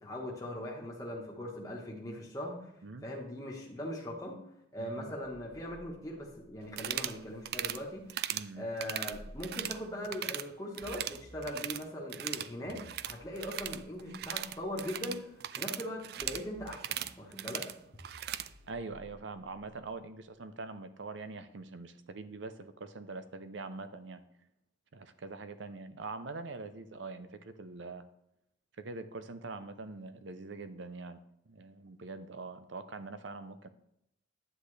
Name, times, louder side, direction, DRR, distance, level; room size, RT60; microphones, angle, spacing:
voice 1, 0.0-2.7 3.0-4.3 4.7-17.7, left 1 dB, 20° left, -3 dB, 1.3 m, -40 dB
voice 2, 4.8-5.1 8.3-8.7 18.7-24.2 24.9-28.1 28.8-31.2 31.5-33.7, right 3 dB, 80° right, 11 dB, 0.7 m, -43 dB
sound 1, 5.2-8.0 9.1-10.1 10.8-11.9 12.6-14.9 16.2-17.3 17.9-20.1, equal, 35° left, 1.3 m, -56 dB
sound 2, 6.7-7.2 7.5-7.8 8.1-8.5 8.8-9.8 10.0-10.5 10.7-11.8 12.1-18.5, right 12 dB, 55° right, 0.3 m, -38 dB
10.0 x 8.2 x 3.3 m, 0.78 s
head